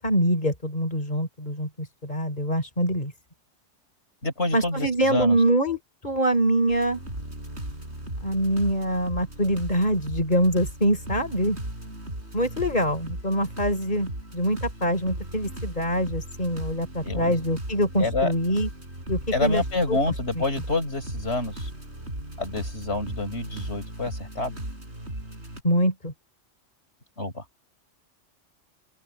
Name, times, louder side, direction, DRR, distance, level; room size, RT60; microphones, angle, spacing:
voice 1, 0.0-3.1 4.5-7.0 8.2-11.6 12.3-18.7 19.1-19.6 19.9-20.0 20.4-20.5 25.6-26.1, equal, 35° left, 5.4 m, -24 dB
voice 2, 4.2-5.4 17.0-17.4 18.0-18.3 19.3-21.7 22.4-24.6 27.2-27.4, left 2 dB, 65° left, 5.8 m, -28 dB
sound 1, 6.7-25.6, right 1 dB, 60° right, 8.5 m, -37 dB
open air
omnidirectional pair, 1.2 m